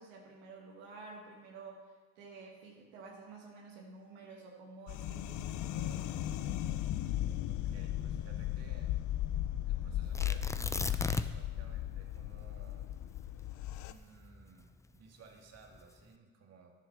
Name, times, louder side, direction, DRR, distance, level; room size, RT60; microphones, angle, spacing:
voice 1, 0.0-6.2, right 4 dB, 90° right, -1 dB, 1.7 m, -51 dB
sound 1, 4.9-13.9, left 12 dB, 70° left, 0.6 m, -36 dB
voice 2, 7.5-9.0 9.7-12.9 13.9-16.7, right 5 dB, 55° right, 2 dB, 1.9 m, -58 dB
Tearing, 10.1-11.5 11.8-11.9 12.5-14.8 15.5-16.0, left 2 dB, 10° left, 0.5 m, -37 dB
10.0 x 7.8 x 5.9 m, 1.3 s
supercardioid pair, 65°, 31 cm